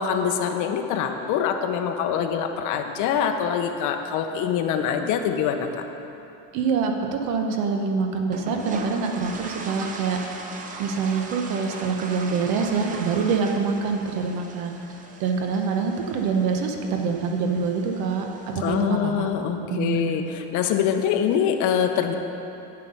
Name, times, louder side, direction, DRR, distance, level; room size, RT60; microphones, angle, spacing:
voice 1, 0.0-5.8 18.6-22.1, left 8 dB, 50° left, 5 dB, 0.8 m, -24 dB
voice 2, 6.5-10.2 10.8-14.8 15.2-19.3 19.7-20.2, right 5 dB, 60° right, 4 dB, 1.0 m, -25 dB
sound 1, 8.3-18.8, right 3 dB, 20° right, 0.5 m, -39 dB
9.0 x 7.7 x 5.5 m, 2.9 s
cardioid pair, 160°, 38 cm